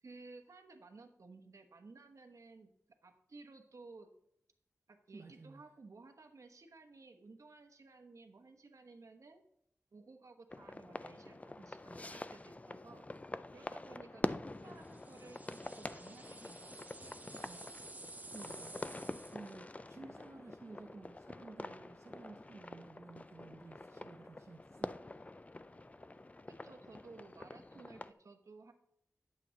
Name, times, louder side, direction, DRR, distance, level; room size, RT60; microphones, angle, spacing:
voice 1, 0.0-2.7 3.0-4.1 4.9-9.4 9.9-13.1 13.5-16.7 17.0-17.2 17.4-17.6 26.5-28.7, right 3 dB, 75° right, 5 dB, 1.1 m, -56 dB
voice 2, 5.1-5.7 18.3-19.0 19.3-25.0, right 3 dB, 60° right, 1 dB, 0.8 m, -54 dB
sound 1, 10.5-28.1, left 2 dB, 25° left, 0.4 m, -46 dB
sound 2, 14.8-19.6, right 2 dB, 30° right, 0.8 m, -53 dB
9.8 x 8.4 x 3.9 m, 0.74 s
wide cardioid pair, 80°, 5 cm